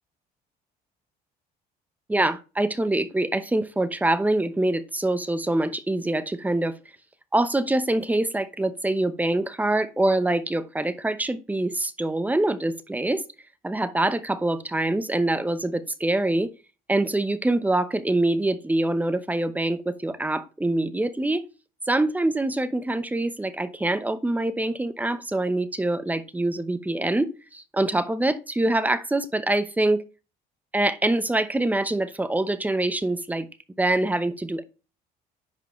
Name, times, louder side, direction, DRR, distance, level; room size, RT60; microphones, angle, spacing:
voice 1, 2.1-6.7 7.3-13.2 13.6-16.5 16.9-21.4 21.9-30.0 30.7-33.5 33.8-34.6, right 2 dB, 10° right, 0.8 m, -25 dB
10.5 x 4.7 x 3.1 m
cardioid pair, 110°, 17 cm